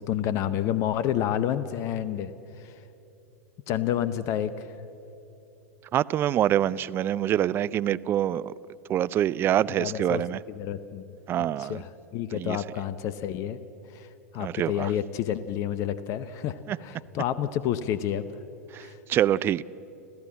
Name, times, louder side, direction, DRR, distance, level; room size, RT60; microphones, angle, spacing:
voice 1, 0.0-2.7 3.7-4.7 9.8-10.2 10.5-11.0 11.6-13.6 13.9-14.1 14.3-18.2 18.8-19.0, left 10 dB, 40° left, 14 dB, 0.8 m, -29 dB
voice 2, 5.9-8.5 8.9-10.4 11.3-11.8 12.3-12.6 14.4-14.9 16.7-16.8 18.7-19.6, right 11 dB, 30° right, 18 dB, 0.4 m, -25 dB
26.0 x 15.5 x 7.4 m, 2.9 s
figure-of-eight pair, 95°, 8 cm